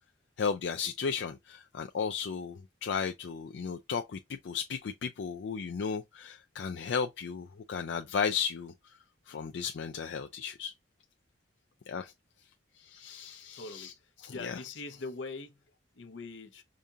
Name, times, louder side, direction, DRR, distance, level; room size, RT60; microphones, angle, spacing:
voice 1, 0.4-8.7 9.3-10.7 11.9-12.1 12.8-14.6, left 6 dB, 70° left, 0.4 m, -35 dB
voice 2, 13.5-13.9 14.3-15.6 16.0-16.6, left 3 dB, 85° left, 0.8 m, -42 dB
5.1 x 2.7 x 2.3 m
head